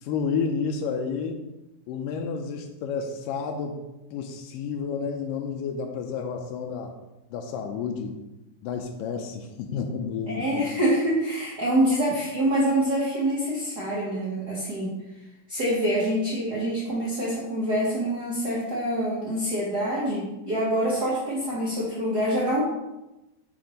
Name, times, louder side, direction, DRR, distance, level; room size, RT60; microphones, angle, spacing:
voice 1, 0.0-1.4 1.9-3.8 4.1-6.9 7.3-8.1 8.6-10.7, left 5 dB, 85° left, 3 dB, 2.2 m, -30 dB
voice 2, 10.3-15.0 15.5-22.6, right 1 dB, 60° right, -8 dB, 1.0 m, -26 dB
6.1 x 3.5 x 5.1 m, 0.99 s
omnidirectional pair, 3.8 m